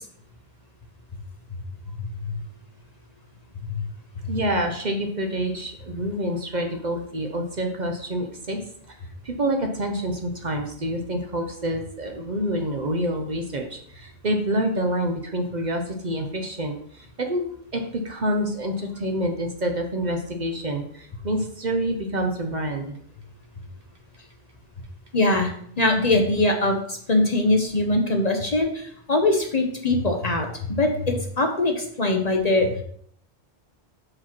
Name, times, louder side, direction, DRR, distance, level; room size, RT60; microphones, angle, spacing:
voice 1, 4.3-8.6 8.9-9.0 9.2-17.5 17.7-23.0, right 1 dB, 45° right, 3 dB, 0.9 m, -27 dB
voice 2, 25.1-32.7, left 2 dB, 40° left, 3 dB, 0.8 m, -22 dB
4.9 x 4.4 x 5.8 m, 0.65 s
omnidirectional pair, 1.1 m